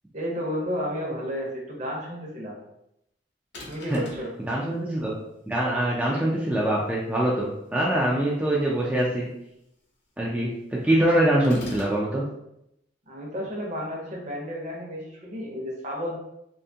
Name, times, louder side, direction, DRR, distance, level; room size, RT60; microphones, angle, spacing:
voice 1, 0.1-2.6 3.7-4.3 13.1-16.2, equal, 40° right, -2 dB, 0.7 m, -32 dB
sound 1, 3.5-4.3 11.4-12.0, left 1 dB, 65° left, 0.7 m, -41 dB
voice 2, 4.5-5.1 5.5-9.3 10.2-12.2, right 1 dB, 10° right, -5 dB, 0.3 m, -24 dB
2.6 x 2.3 x 2.6 m, 0.82 s
head